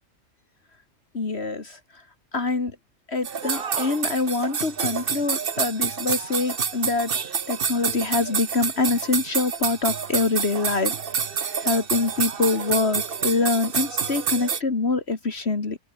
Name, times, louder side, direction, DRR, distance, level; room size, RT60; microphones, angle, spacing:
voice 1, 1.1-1.8 2.3-2.8 3.1-7.1 7.5-10.9 11.6-15.8, left 3 dB, 55° left, 2.4 m, -25 dB
sound 1, 3.2-14.6, right 6 dB, 45° right, 1.2 m, -28 dB
omnidirectional pair, 1.3 m